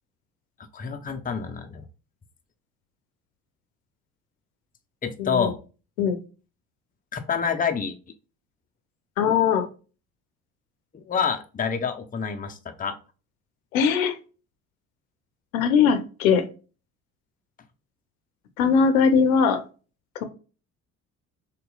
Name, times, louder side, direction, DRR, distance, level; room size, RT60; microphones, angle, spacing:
voice 1, 0.7-1.9 5.0-5.6 7.1-7.9 10.9-13.0, left 6 dB, 20° left, 5 dB, 0.6 m, -27 dB
voice 2, 5.2-5.5 6.0-6.2 9.2-9.6 13.7-14.2 15.5-16.5 18.6-19.6, left 6 dB, 85° left, 8 dB, 0.6 m, -20 dB
3.6 x 2.9 x 2.2 m, 0.34 s
hypercardioid pair, 60°, 40 cm